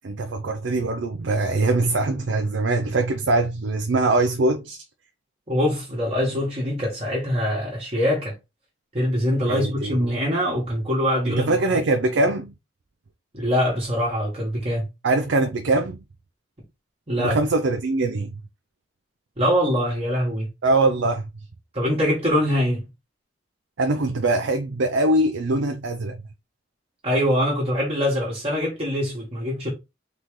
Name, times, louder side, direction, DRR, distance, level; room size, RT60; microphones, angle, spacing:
voice 1, 0.0-4.8 9.5-10.0 11.3-12.5 15.0-16.0 17.2-18.3 20.6-21.2 23.8-26.2, right 2 dB, 70° right, 0.5 m, -22 dB
voice 2, 5.5-8.3 8.9-11.6 13.3-14.9 17.1-17.4 19.4-20.5 21.7-22.8 27.0-29.7, equal, 30° right, 1.3 m, -23 dB
3.9 x 3.1 x 3.6 m
head